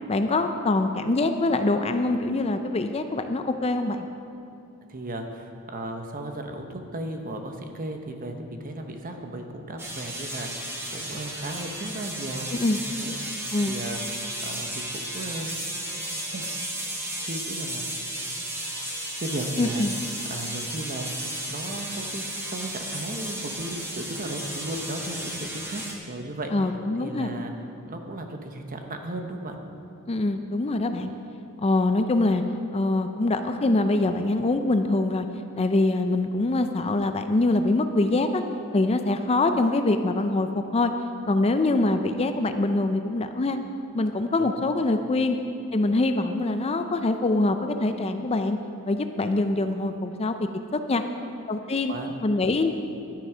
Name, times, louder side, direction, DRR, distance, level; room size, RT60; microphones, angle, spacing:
voice 1, 0.1-4.1 12.5-12.8 13.5-13.8 19.6-19.9 26.5-27.3 30.1-31.1 31.6-32.4 32.7-35.3 35.6-38.4 38.7-40.9 41.3-43.6 43.9-45.4 45.7-48.6 48.9-50.5 50.9-51.0 51.5-51.9 52.2-52.7, left 2 dB, 25° left, 7 dB, 0.4 m, -24 dB
voice 2, 4.9-15.7 16.3-16.5 17.2-17.9 19.2-19.9 20.3-22.2 22.5-26.5 27.0-27.5 27.9-29.6 44.4-44.5 51.9-52.2, right 1 dB, 40° right, 4 dB, 1.0 m, -35 dB
sound 1, 9.8-25.9, right 1 dB, 10° right, 1.3 m, -34 dB
12.0 x 9.9 x 5.0 m, 2.7 s
head